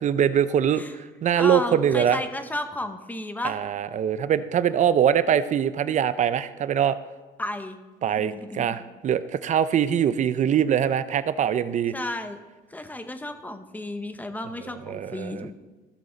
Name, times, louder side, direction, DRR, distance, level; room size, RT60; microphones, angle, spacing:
voice 1, 0.0-2.2 3.4-6.9 8.0-11.9 14.9-15.5, right 9 dB, 45° right, 14 dB, 0.6 m, -23 dB
voice 2, 1.4-3.6 7.4-7.8 8.2-8.8 11.9-12.4 12.7-15.5, left 1 dB, 10° left, 8 dB, 0.9 m, -33 dB
15.5 x 6.7 x 3.9 m, 1.2 s
cardioid pair, 110°, 17 cm